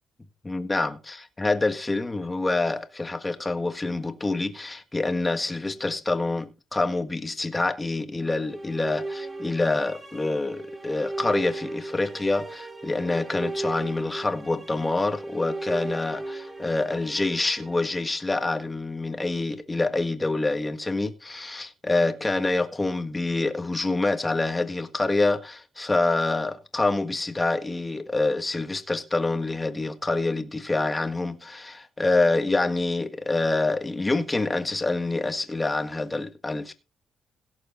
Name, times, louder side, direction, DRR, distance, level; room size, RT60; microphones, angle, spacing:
voice 1, 0.4-36.7, left 2 dB, 20° left, 1.6 m, -26 dB
sound 1, 8.2-18.4, right 2 dB, 25° right, 3.7 m, -36 dB
17.0 x 6.7 x 4.1 m
cardioid pair, 90°, 0 cm